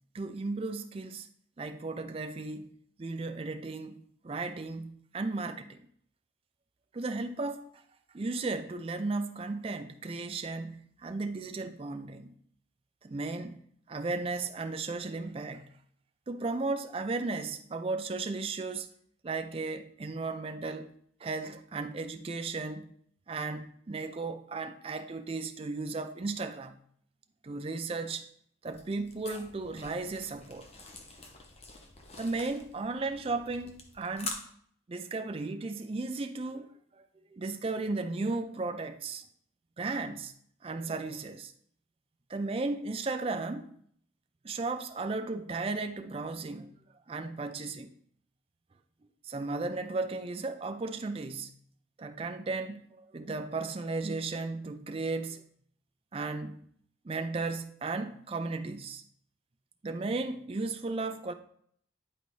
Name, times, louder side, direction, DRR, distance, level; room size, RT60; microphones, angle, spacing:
voice 1, 0.1-1.3 1.6-2.7 3.0-5.8 6.9-7.7 8.1-12.3 13.0-13.6 13.9-15.7 16.3-18.9 19.2-20.9 21.2-22.9 23.3-26.8 27.4-28.3 28.6-30.7 32.2-34.4 34.9-39.2 39.8-40.3 40.6-41.5 42.3-43.7 44.4-46.7 47.1-47.9 49.2-51.5 52.0-55.4 56.1-56.6 57.0-59.0 59.8-61.3, right 3 dB, 30° right, 0.4 m, -35 dB
sound 1, 28.6-34.4, left 3 dB, 30° left, 0.7 m, -46 dB
10.0 x 4.0 x 3.1 m
head